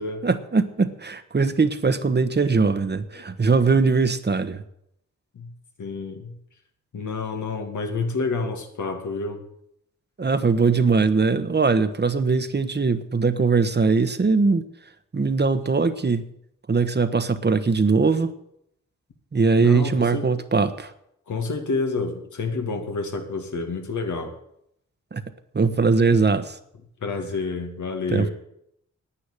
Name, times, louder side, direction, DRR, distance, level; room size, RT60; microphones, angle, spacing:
voice 1, 0.2-4.6 10.2-14.6 15.1-16.3 16.7-18.3 19.3-20.9 25.1-25.2 25.5-26.6 28.1-28.3, right 4 dB, 35° right, 10 dB, 1.2 m, -21 dB
voice 2, 5.8-6.3 6.9-9.4 19.6-20.3 21.3-24.3 27.0-28.3, left 4 dB, 80° left, 4 dB, 2.4 m, -29 dB
10.0 x 9.1 x 9.9 m, 0.75 s
cardioid pair, 65°, 30 cm